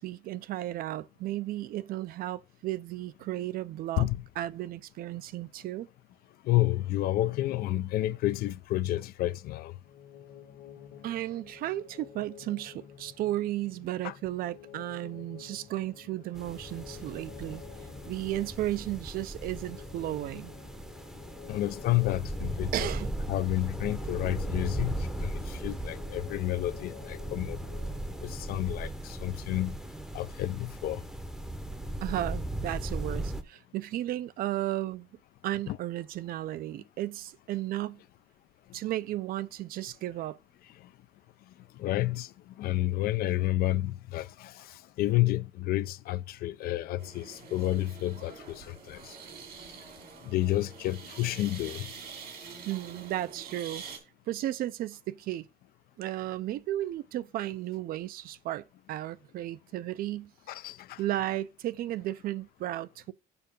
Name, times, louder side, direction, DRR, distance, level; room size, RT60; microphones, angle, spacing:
voice 1, 0.0-4.1 4.4-5.9 11.0-17.6 18.1-20.5 22.7-23.1 32.0-35.1 35.4-38.0 38.7-40.4 52.7-53.8 54.3-55.5 56.0-60.3 61.0-63.1, right 14 dB, 70° right, 0.5 m, -34 dB
voice 2, 6.4-9.7 14.0-14.1 21.5-22.9 23.3-27.6 28.2-29.8 30.1-31.0 35.7-35.8 41.8-42.3 42.6-49.1 50.3-51.9 60.5-61.0, left 15 dB, 75° left, 0.5 m, -30 dB
sound 1, 9.8-28.6, left 9 dB, 60° left, 1.4 m, -50 dB
sound 2, 16.3-33.4, right 1 dB, 5° right, 0.7 m, -37 dB
sound 3, 47.0-54.0, right 5 dB, 85° right, 2.8 m, -46 dB
7.0 x 5.6 x 5.3 m
cardioid pair, 165°, 16 cm